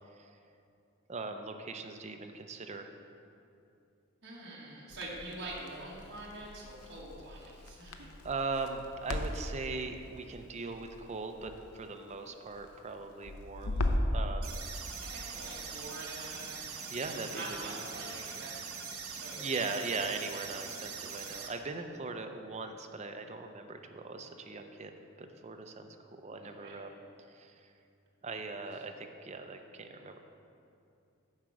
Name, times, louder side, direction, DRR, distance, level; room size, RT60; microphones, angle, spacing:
voice 1, 1.1-2.9 8.2-13.8 14.1-14.6 16.9-17.8 19.3-24.9 25.2-27.0 27.3-27.7 28.2-30.2, right 3 dB, 30° right, 5 dB, 0.5 m, -39 dB
voice 2, 4.2-8.1 15.0-20.0 20.3-20.4 26.4-26.8 28.7-28.8, right 2 dB, 50° right, -6 dB, 1.6 m, -46 dB
Crackle, 4.9-14.2, left 1 dB, 90° left, 0.6 m, -38 dB
sound 1, 14.4-21.5, right 6 dB, 75° right, 0.8 m, -42 dB
8.8 x 4.7 x 6.2 m, 2.6 s
head